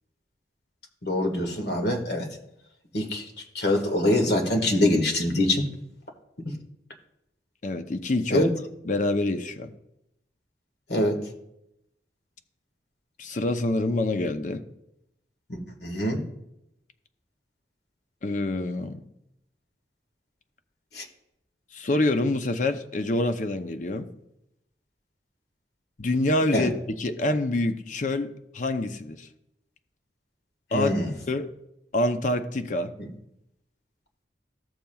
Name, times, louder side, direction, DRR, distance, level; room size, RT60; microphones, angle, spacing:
voice 1, 1.0-2.3 2.9-3.2 3.5-5.6 6.4-6.5 8.3-8.5 10.9-11.2 15.5-16.2 20.9-21.0 26.5-26.7 30.7-31.1 33.0-33.1, left 1 dB, 65° left, 3 dB, 1.7 m, -24 dB
voice 2, 7.6-8.5 8.8-9.7 13.2-14.6 18.2-19.0 21.7-24.1 26.0-26.7 27.0-29.3 30.7-30.9 31.3-31.5 31.9-32.9, left 2 dB, 45° left, 8 dB, 0.6 m, -26 dB
14.5 x 7.1 x 2.3 m, 0.82 s
head